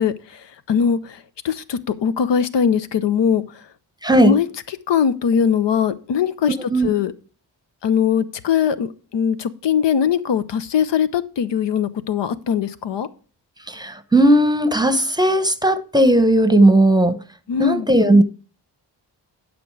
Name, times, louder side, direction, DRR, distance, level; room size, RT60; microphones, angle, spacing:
voice 1, 0.0-3.7 4.2-4.5 4.9-7.1 7.8-13.1 17.5-17.9, left 7 dB, 70° left, 0.7 m, -21 dB
voice 2, 4.0-4.4 6.7-6.9 13.7-17.2 17.6-18.2, right 1 dB, 10° right, 0.9 m, -16 dB
11.5 x 5.2 x 4.6 m
cardioid pair, 50°, 44 cm